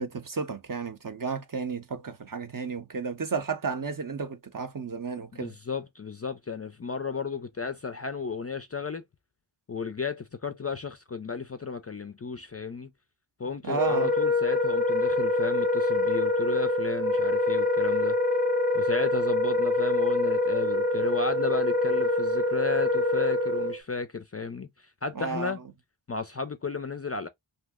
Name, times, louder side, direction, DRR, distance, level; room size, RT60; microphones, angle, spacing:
voice 1, 0.0-5.5 13.6-14.1 25.2-25.5, right 5 dB, 40° right, 0.6 m, -32 dB
voice 2, 5.3-9.0 9.7-12.9 13.4-18.2 18.7-25.6 26.1-27.3, left 5 dB, 35° left, 0.4 m, -33 dB
Wind instrument woodwind instrument, 13.7-23.8, left 2 dB, ahead, 0.7 m, -25 dB
2.8 x 2.0 x 3.4 m
wide cardioid pair, 45°, 49 cm